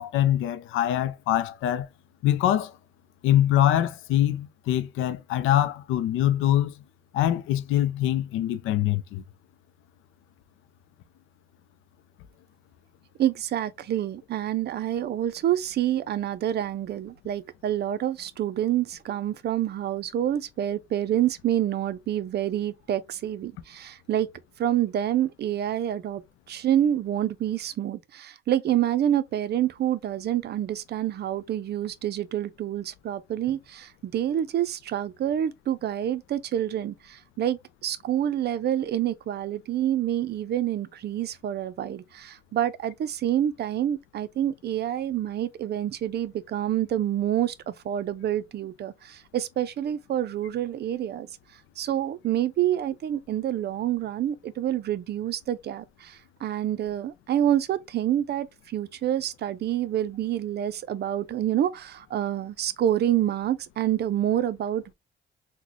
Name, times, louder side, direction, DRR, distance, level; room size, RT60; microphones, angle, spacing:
voice 1, 0.0-1.9 2.2-2.8 3.2-6.8 7.1-9.2, left 12 dB, 90° left, 0.4 m, -24 dB
voice 2, 13.2-24.3 24.6-26.2 26.5-51.3 51.8-64.9, right 11 dB, 55° right, 0.5 m, -27 dB
3.9 x 2.2 x 3.0 m
cardioid pair, 90°, 20 cm